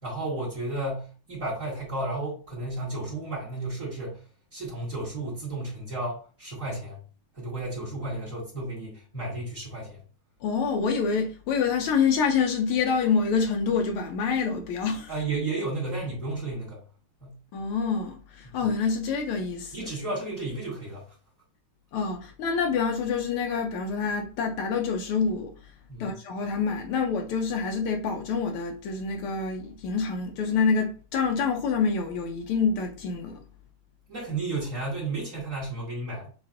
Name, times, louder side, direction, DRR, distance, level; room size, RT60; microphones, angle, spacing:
voice 1, 0.0-4.2 4.5-7.0 7.3-10.0 15.1-16.8 17.2-17.4 18.4-18.6 19.7-21.1 25.9-26.2 34.1-36.3, right 2 dB, 40° right, 1.9 m, -33 dB
voice 2, 10.4-15.1 17.5-19.9 21.9-25.5 26.0-33.4, left 5 dB, 80° left, 1.5 m, -27 dB
7.0 x 2.5 x 2.5 m
omnidirectional pair, 2.4 m